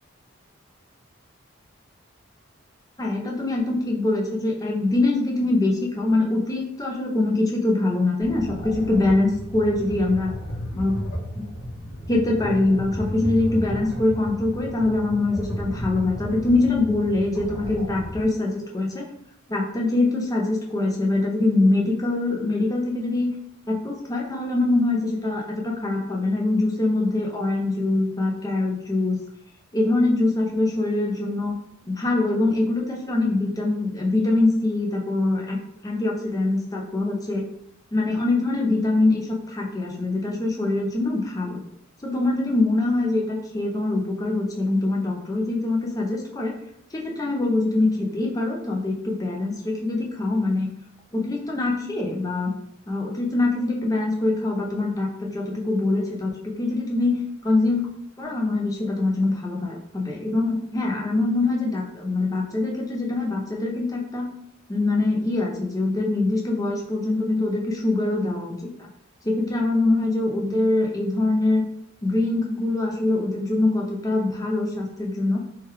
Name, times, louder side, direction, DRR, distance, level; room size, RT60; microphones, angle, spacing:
voice 1, 3.0-10.3 10.7-11.0 11.3-11.5 12.1-19.1 19.5-23.3 23.7-29.2 29.7-31.5 31.9-37.5 37.9-41.6 42.0-46.6 46.9-50.7 51.1-52.6 52.9-57.9 58.2-64.3 64.7-68.9 69.2-71.7 72.0-75.4, left 2 dB, 15° left, -1 dB, 0.5 m, -23 dB
sound 1, 8.2-18.2, equal, 85° left, 1.1 m, -33 dB
3.1 x 2.3 x 3.1 m, 0.74 s
head